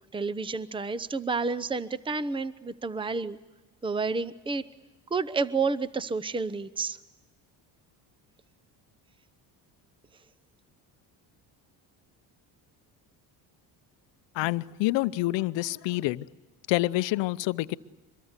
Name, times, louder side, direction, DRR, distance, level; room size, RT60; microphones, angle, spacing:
voice 1, 0.1-3.4 3.8-4.6 5.1-7.0, right 4 dB, 10° right, 16 dB, 0.8 m, -30 dB
voice 2, 14.3-16.3 16.7-17.8, left 18 dB, 80° left, 15 dB, 0.8 m, -27 dB
24.5 x 22.0 x 8.2 m, 1.2 s
cardioid pair, 90°, 43 cm